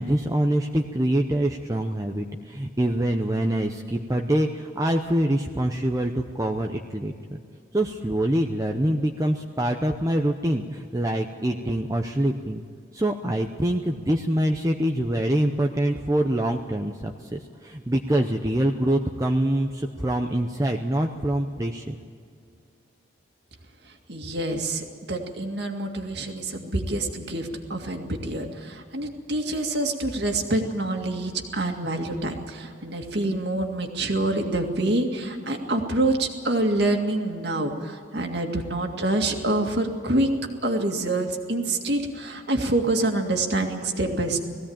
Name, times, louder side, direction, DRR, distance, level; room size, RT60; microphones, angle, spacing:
voice 1, 0.0-7.4 7.7-12.6 12.9-22.0, right 1 dB, 15° right, 3 dB, 0.7 m, -25 dB
voice 2, 24.1-40.3 40.6-44.4, right 2 dB, 60° right, 3 dB, 2.1 m, -26 dB
19.0 x 16.0 x 8.8 m, 2.3 s
head